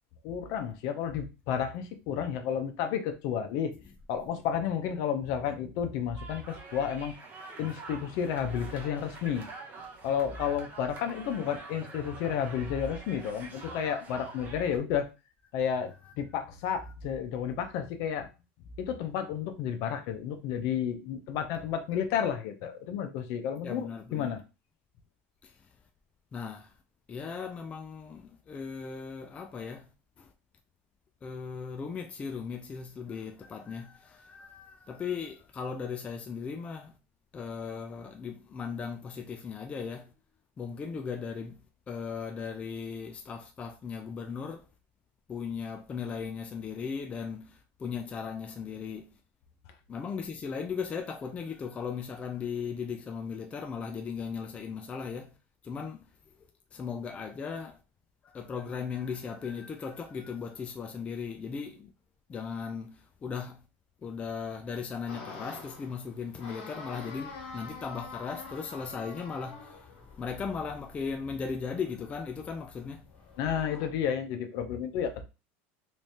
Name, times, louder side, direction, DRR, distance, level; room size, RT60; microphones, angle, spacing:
voice 1, 0.2-3.7 4.1-7.1 7.6-9.5 10.0-15.1 15.5-18.3 18.8-24.4 73.4-75.2, left 8 dB, 55° left, 0.7 m, -31 dB
sound 1, 6.2-14.8, right 3 dB, 25° right, 0.8 m, -46 dB
voice 2, 23.6-24.4 25.4-25.7 26.3-26.7 27.1-29.9 30.2-30.3 31.2-37.0 37.3-40.1 40.6-41.6 41.9-44.7 45.3-49.1 49.9-55.3 55.6-56.1 56.4-57.8 58.2-61.9 62.3-63.6 64.0-73.1, left 6 dB, 20° left, 0.4 m, -37 dB
sound 2, 65.1-70.6 73.1-73.9, left 4 dB, 80° left, 1.5 m, -45 dB
3.2 x 3.1 x 2.8 m
supercardioid pair, 145°, 7 cm